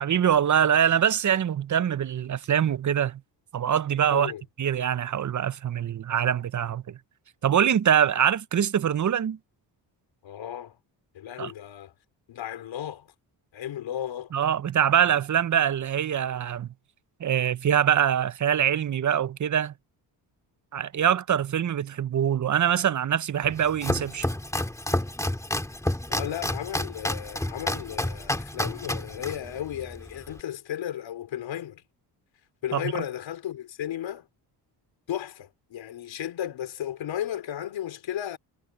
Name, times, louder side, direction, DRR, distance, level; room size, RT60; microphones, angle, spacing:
voice 1, 0.0-3.2 3.5-4.3 4.6-7.0 7.4-9.4 11.4-11.5 14.3-16.7 17.2-19.7 20.7-24.3 32.7-32.9, right 9 dB, 40° right, 0.8 m, -24 dB
voice 2, 4.1-4.4 10.2-10.8 11.1-11.9 12.3-13.1 13.5-14.3 26.1-31.8 32.6-34.3 35.1-38.4, left 11 dB, 80° left, 3.7 m, -34 dB
Domestic sounds home sounds, 23.4-30.4, left 1 dB, 5° left, 2.2 m, -30 dB
cardioid pair, 75°, 45 cm